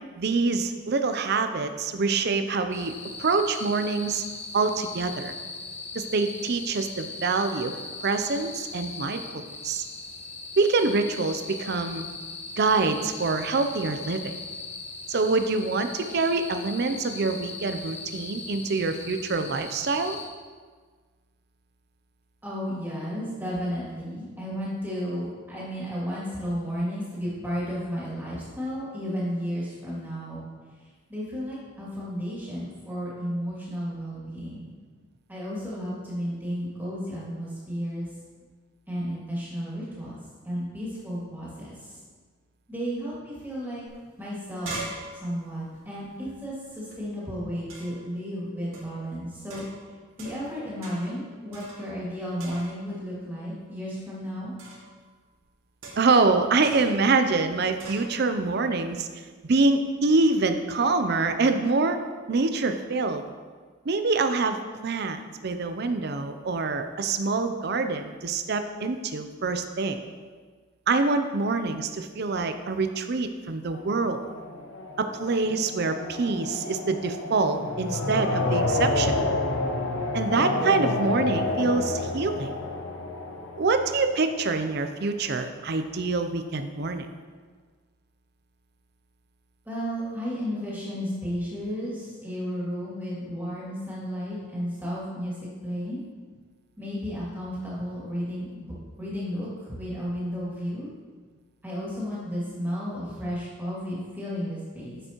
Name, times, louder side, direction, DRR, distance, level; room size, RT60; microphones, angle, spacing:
voice 1, 0.2-2.9 3.2-4.2 4.5-5.3 5.9-7.7 8.0-9.8 10.6-12.0 12.6-14.4 15.1-20.2 56.0-59.1 59.5-62.0 62.3-63.2 63.9-64.6 64.8-70.0 70.9-74.3 75.0-79.2 80.1-82.5 83.6-87.1, right 3 dB, 50° right, 8 dB, 0.5 m, -25 dB
sound 1, 2.7-20.3, left 3 dB, 30° left, 1.0 m, -39 dB
voice 2, 22.4-30.4 31.1-34.7 35.3-38.1 38.9-40.2 40.4-42.0 42.7-43.8 44.2-44.8 45.1-49.6 50.2-54.5 89.7-95.3 95.6-96.0 96.8-100.9 101.6-105.0, equal, 10° right, -8 dB, 2.4 m, -33 dB
sound 2, 43.9-44.0 44.2-47.0 47.7-48.1 48.7-49.0 49.5-50.5 50.8-51.2 51.5-52.1 52.4-53.0 54.6-54.9 55.8-56.2 56.6-57.0 57.8-58.1, right 2 dB, 75° right, 2.1 m, -41 dB
sound 3, 73.7-84.6, left 2 dB, 65° left, 0.7 m, -29 dB
9.9 x 6.8 x 3.0 m, 1.5 s
head